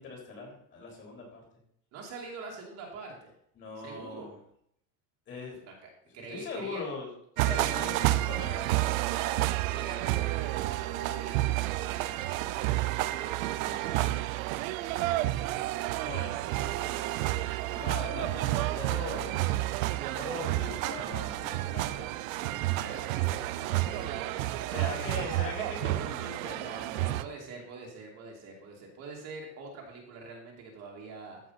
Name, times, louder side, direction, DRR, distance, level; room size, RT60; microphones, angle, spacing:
voice 1, 0.0-1.4 3.6-4.3 5.3-5.6 6.3-7.1 7.4-8.7 13.6-14.2 16.0-16.4 17.7-19.4 20.1-22.2 24.7-27.2, left 3 dB, 25° left, 0 dB, 3.5 m, -41 dB
voice 2, 1.9-3.3 3.8-4.3 5.7-6.8 7.4-8.0 9.6-12.1 22.7-24.3 24.7-25.3 27.0-31.4, right 4 dB, 35° right, -1 dB, 2.4 m, -44 dB
sound 1, 7.4-27.2, right 16 dB, 60° right, 0.7 m, -30 dB
14.5 x 5.4 x 5.7 m, 0.71 s
supercardioid pair, 175°, 46 cm